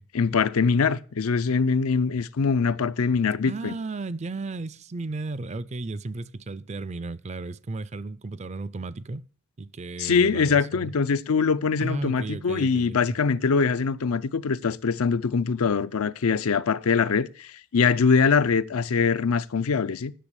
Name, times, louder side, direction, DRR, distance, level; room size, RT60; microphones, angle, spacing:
voice 1, 0.1-3.8 10.0-20.1, left 5 dB, 85° left, 0.6 m, -23 dB
voice 2, 3.5-9.3 9.6-10.9 11.8-13.1, right 3 dB, 30° right, 0.4 m, -34 dB
10.0 x 6.9 x 8.0 m
head